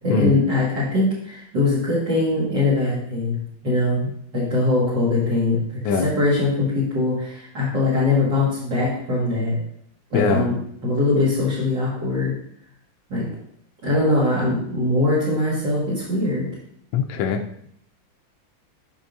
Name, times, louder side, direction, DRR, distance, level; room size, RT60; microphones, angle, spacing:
voice 1, 0.0-3.4 3.6-9.6 10.1-10.5 10.8-12.3 13.1-13.3 13.8-16.5, left 2 dB, 60° right, -7 dB, 2.6 m, -22 dB
voice 2, 10.1-10.5 16.9-17.4, left 5 dB, 75° left, 4 dB, 1.3 m, -21 dB
11.0 x 5.4 x 2.7 m, 0.68 s
omnidirectional pair, 2.2 m